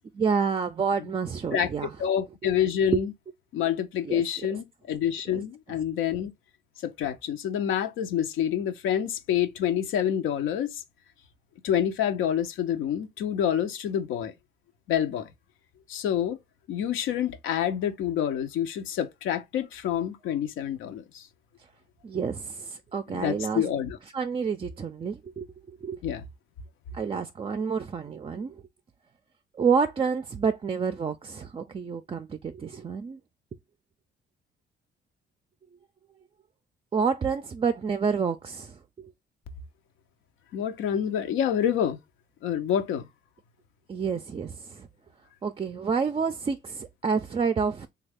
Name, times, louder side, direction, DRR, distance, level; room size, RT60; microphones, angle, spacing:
voice 1, 0.1-1.9 2.9-3.0 4.0-4.2 5.3-5.4 22.0-23.6 24.1-26.0 26.9-28.6 29.5-33.2 36.9-39.1 43.9-44.9 45.4-47.9, right 5 dB, 25° right, 0.4 m, -29 dB
voice 2, 2.0-3.1 3.5-6.3 6.8-10.8 11.6-14.3 14.9-15.3 15.9-16.4 16.7-21.2 23.1-24.0 26.0-26.2 40.5-42.0 42.4-43.1, left 9 dB, 85° left, 0.6 m, -27 dB
3.2 x 2.3 x 3.4 m
cardioid pair, 90°, 20 cm